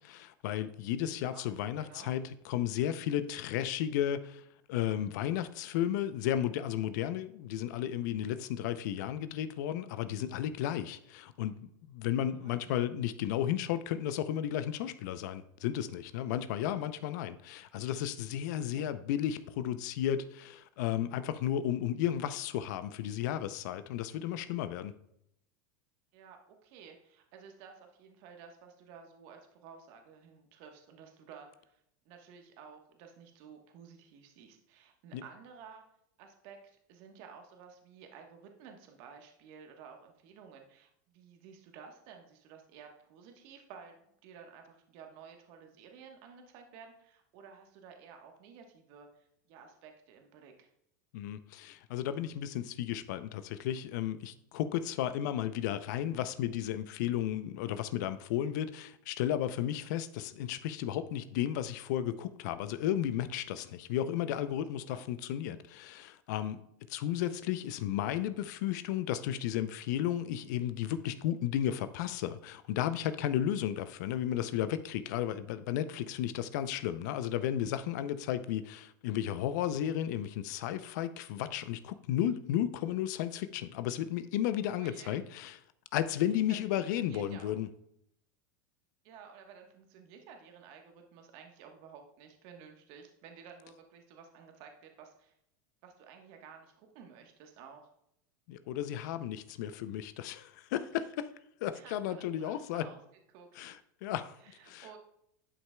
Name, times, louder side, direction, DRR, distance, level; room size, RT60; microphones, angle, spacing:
voice 1, 0.0-4.4 4.7-24.9 35.1-35.2 51.1-66.6 66.9-85.6 85.9-87.7 98.5-101.3 101.6-102.9 103.6-104.4 104.7-104.9, left 11 dB, 65° left, 12 dB, 0.5 m, -33 dB
voice 2, 1.1-1.4 1.8-2.1 12.4-12.6 18.6-18.9 26.1-35.8 36.2-44.0 44.2-50.7 64.8-65.0 84.7-85.2 86.5-87.5 89.0-95.3 95.8-97.8 101.7-103.0 103.3-103.5 104.4-105.0, right 6 dB, 55° right, 4 dB, 1.2 m, -53 dB
11.0 x 5.8 x 2.3 m, 0.75 s
hypercardioid pair, 110°, 10 cm